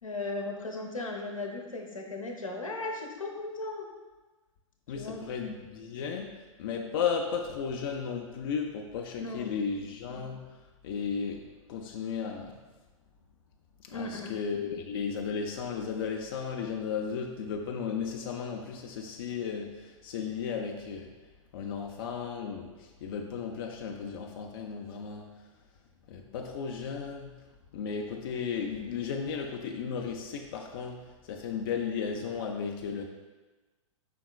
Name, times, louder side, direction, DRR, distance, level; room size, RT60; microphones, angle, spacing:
voice 1, 0.0-3.9 4.9-5.2 9.2-9.7 13.9-14.3, left 2 dB, 85° left, 0 dB, 0.7 m, -37 dB
voice 2, 4.9-12.6 13.8-21.1 21.5-25.5 26.1-27.4 27.7-33.1, left 6 dB, 45° left, 2 dB, 0.4 m, -35 dB
5.1 x 3.6 x 2.3 m, 1.2 s
figure-of-eight pair, 105°, 17 cm